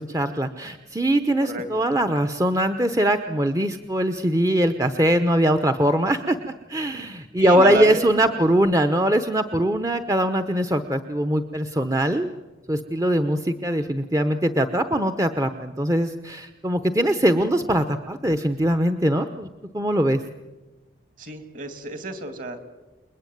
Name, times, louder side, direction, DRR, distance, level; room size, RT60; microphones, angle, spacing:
voice 1, 0.0-6.4 6.7-12.3 12.7-19.5 19.7-20.2, right 1 dB, 15° right, 8 dB, 0.9 m, -22 dB
voice 2, 1.4-1.9 7.4-8.4 21.2-22.6, right 2 dB, 45° right, 9 dB, 2.8 m, -30 dB
29.0 x 21.0 x 9.4 m, 1.2 s
head